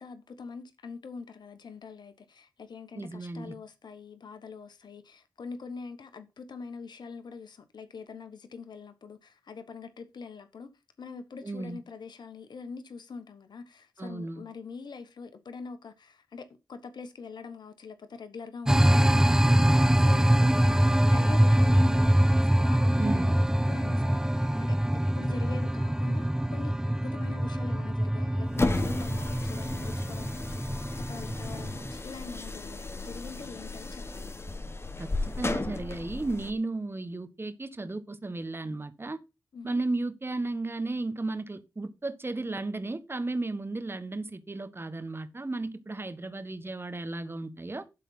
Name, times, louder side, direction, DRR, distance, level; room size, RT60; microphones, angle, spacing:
voice 1, 0.0-10.7 11.0-24.8 25.1-34.3 39.5-39.8, left 5 dB, 65° left, 1.2 m, -44 dB
voice 2, 2.9-3.5 11.4-11.8 14.0-14.4 23.0-23.3 35.0-39.2 39.6-47.8, right 2 dB, 30° right, 1.4 m, -34 dB
sound 1, 18.7-31.9, right 1 dB, 5° right, 0.6 m, -24 dB
sound 2, 28.5-36.5, left 2 dB, 35° left, 1.1 m, -34 dB
11.5 x 4.1 x 5.5 m
cardioid pair, 45°, 8 cm